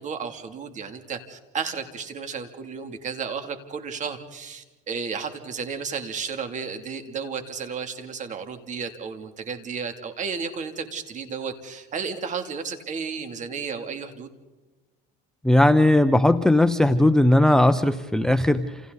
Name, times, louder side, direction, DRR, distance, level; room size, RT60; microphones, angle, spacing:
voice 1, 0.0-14.4, right 5 dB, 35° right, 7 dB, 2.9 m, -33 dB
voice 2, 15.4-18.8, left 1 dB, 5° left, 12 dB, 0.7 m, -18 dB
29.0 x 28.0 x 4.1 m, 1.2 s
supercardioid pair, 120°, 21 cm